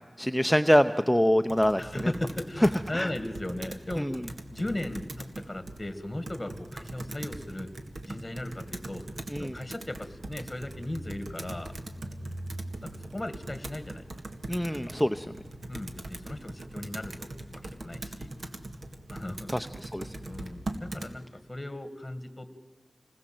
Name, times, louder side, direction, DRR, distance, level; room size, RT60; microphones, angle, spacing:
voice 1, 0.2-2.1 2.9-3.1 4.0-4.2 9.3-9.5 14.5-15.3 19.5-20.1, equal, ahead, 9 dB, 0.7 m, -25 dB
Computer keyboard, 1.5-21.1, right 2 dB, 70° right, 2.0 m, -41 dB
voice 2, 1.8-4.1 4.5-7.7 8.1-9.0 9.4-11.7 12.8-14.0 14.6-14.9 15.7-18.3 19.1-19.5 20.3-22.6, left 1 dB, 20° left, 10 dB, 2.0 m, -37 dB
28.5 x 20.5 x 7.8 m, 1.3 s
wide cardioid pair, 75°, 0 cm